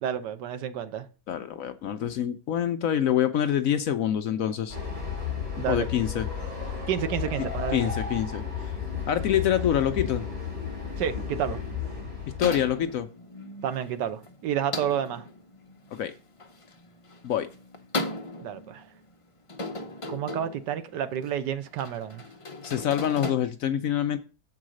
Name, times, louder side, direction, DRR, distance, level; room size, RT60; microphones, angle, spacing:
voice 1, 0.0-1.1 5.6-5.9 6.9-7.8 11.0-11.6 13.6-15.2 18.4-18.8 20.1-22.2, right 9 dB, 85° right, 1.4 m, -30 dB
voice 2, 1.3-4.8 5.7-6.3 7.7-8.8 9.1-10.2 12.4-13.1 16.0-16.1 17.2-17.5 22.6-24.2, left 10 dB, 65° left, 0.9 m, -26 dB
Train, 4.7-12.9, left 6 dB, 20° right, 4.0 m, -33 dB
sound 1, 12.4-23.3, left 2 dB, 35° left, 0.5 m, -38 dB
7.4 x 4.8 x 6.2 m
omnidirectional pair, 1.8 m